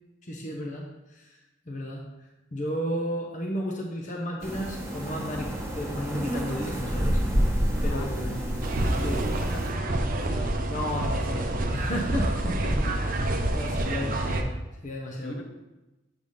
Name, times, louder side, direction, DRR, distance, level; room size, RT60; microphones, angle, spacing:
voice 1, 0.2-1.4 1.7-2.1 2.5-7.2 7.8-8.4 9.0-9.2 10.7-12.3 13.5-14.5 14.8-15.3, equal, 40° left, 0 dB, 0.8 m, -33 dB
sound 1, 4.4-9.7, equal, 15° right, 1.2 m, -29 dB
voice 2, 7.8-8.6 9.0-10.5 12.3-13.1 13.9-14.2 15.2-15.4, equal, 80° left, 1 dB, 1.2 m, -40 dB
sound 2, 8.6-14.4, right 1 dB, 45° right, 0.6 m, -28 dB
7.9 x 3.4 x 5.5 m, 1.0 s
head